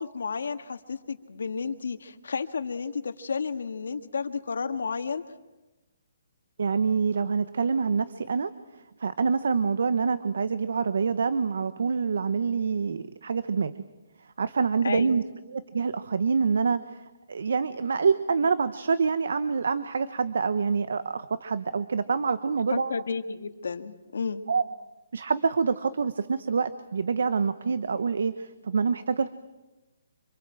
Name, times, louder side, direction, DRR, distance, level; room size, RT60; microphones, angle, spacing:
voice 1, 0.0-5.2 14.8-15.2 22.7-24.4, left 5 dB, 80° left, 7 dB, 1.8 m, -32 dB
voice 2, 6.6-8.5 9.0-13.7 14.4-15.2 15.5-17.0 17.3-22.9 24.5-24.6 25.1-29.3, right 5 dB, 70° right, 13 dB, 1.0 m, -26 dB
26.5 x 24.5 x 7.6 m, 1.1 s
hypercardioid pair, 170°, 0 cm